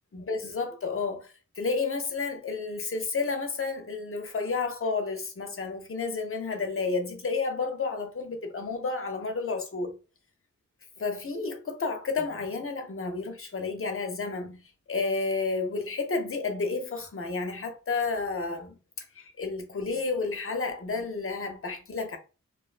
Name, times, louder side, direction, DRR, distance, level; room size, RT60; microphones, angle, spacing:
voice 1, 0.1-10.0 11.0-14.6 14.9-22.2, left 4 dB, 40° left, 0.6 m, -31 dB
2.5 x 2.1 x 2.4 m
wide cardioid pair, 60°, 32 cm